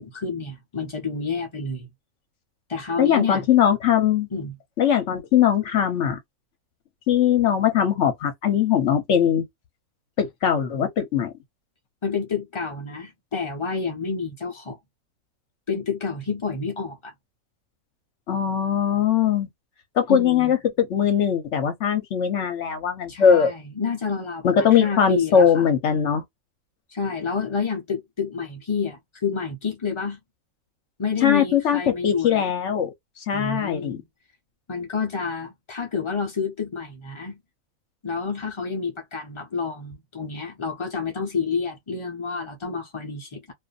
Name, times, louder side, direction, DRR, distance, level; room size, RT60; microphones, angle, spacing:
voice 1, 0.0-1.9 2.7-3.4 4.3-4.5 12.0-14.8 15.7-17.1 20.1-20.6 23.1-25.7 26.9-30.2 31.0-32.5 33.3-34.0 34.7-37.4 38.0-43.5, left 5 dB, 45° left, 0.4 m, -29 dB
voice 2, 3.0-4.3 4.8-6.2 7.1-9.4 10.2-11.3 18.3-19.5 20.0-23.5 24.4-26.2 31.2-32.9 33.2-34.0, left 8 dB, 60° left, 0.9 m, -20 dB
2.5 x 2.5 x 2.3 m
omnidirectional pair, 1.5 m